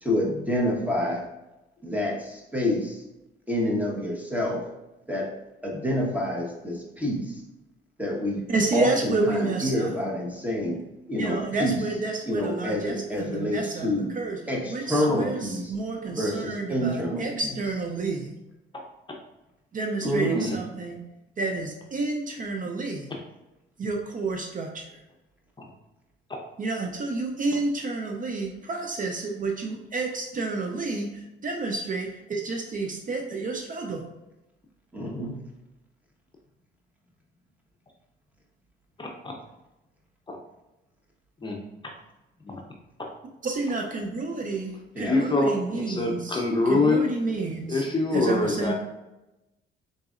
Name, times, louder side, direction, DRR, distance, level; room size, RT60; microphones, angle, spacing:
voice 1, 0.0-1.3 1.8-3.0 3.5-4.6 5.1-5.3 5.6-7.3 8.0-8.5 8.7-10.8 11.1-11.8 12.3-14.1 14.5-15.7 16.1-17.5 20.0-20.5 34.9-35.4 44.9-45.2, left 1 dB, 10° right, -2 dB, 1.1 m, -27 dB
voice 2, 8.5-10.0 11.2-14.4 14.7-18.4 19.7-21.1 21.4-23.1 23.8-25.0 26.6-34.0 43.4-47.8 48.1-48.7, right 3 dB, 40° right, 2 dB, 0.6 m, -30 dB
voice 3, 39.0-39.3 40.3-40.4 41.4-41.6 42.4-42.6 43.0-43.1 45.0-45.5 45.9-47.0 47.7-48.7, left 3 dB, 25° left, 0 dB, 0.7 m, -25 dB
4.0 x 3.9 x 2.4 m, 0.95 s
cardioid pair, 90°, 20 cm